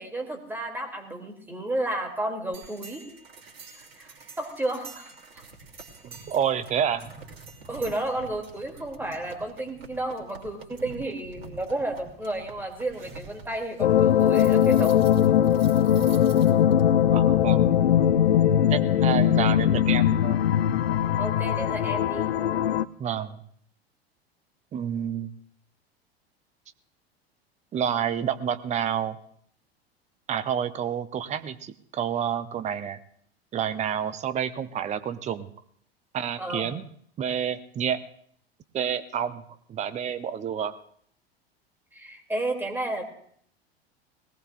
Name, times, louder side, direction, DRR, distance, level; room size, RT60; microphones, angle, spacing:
voice 1, 0.0-3.0 4.0-5.4 7.7-15.0 21.2-22.3 36.4-36.7 41.9-43.0, right 1 dB, 5° right, 2 dB, 2.9 m, -32 dB
sound 1, 2.5-16.8, right 4 dB, 70° right, 2.9 m, -46 dB
voice 2, 6.0-7.1 17.1-17.7 18.7-20.5 23.0-23.4 24.7-25.3 27.7-29.2 30.3-33.0 33.5-35.5 36.1-36.8 37.2-38.0 38.7-39.4 39.7-40.7, right 8 dB, 20° right, 13 dB, 0.7 m, -29 dB
sound 2, 13.8-22.8, left 10 dB, 70° left, 0.6 m, -20 dB
20.0 x 18.5 x 2.5 m, 0.63 s
figure-of-eight pair, 80°, 31 cm